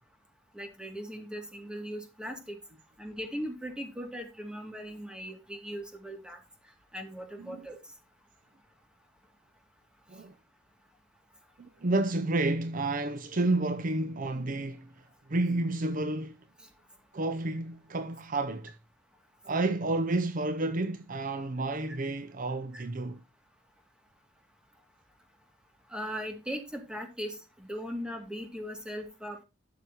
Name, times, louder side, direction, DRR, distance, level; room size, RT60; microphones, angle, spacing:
voice 1, 0.5-2.6 3.0-6.4 6.9-7.8 21.9-22.0 22.7-22.8 25.9-29.4, equal, 5° right, 2.4 m, -39 dB
voice 2, 11.6-14.9 15.3-16.4 17.1-18.7 19.5-23.2, right 2 dB, 45° right, 0.6 m, -30 dB
12.5 x 6.9 x 2.9 m
head